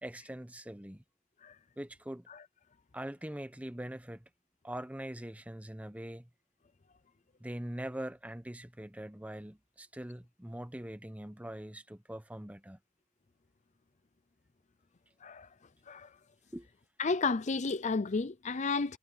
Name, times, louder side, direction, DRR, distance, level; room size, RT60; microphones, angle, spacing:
voice 1, 0.0-1.0 1.8-2.3 2.9-4.2 4.6-6.3 7.4-12.8 16.5-16.7, right 1 dB, 5° right, 1.0 m, -42 dB
voice 2, 17.0-19.0, left 4 dB, 35° left, 0.5 m, -32 dB
head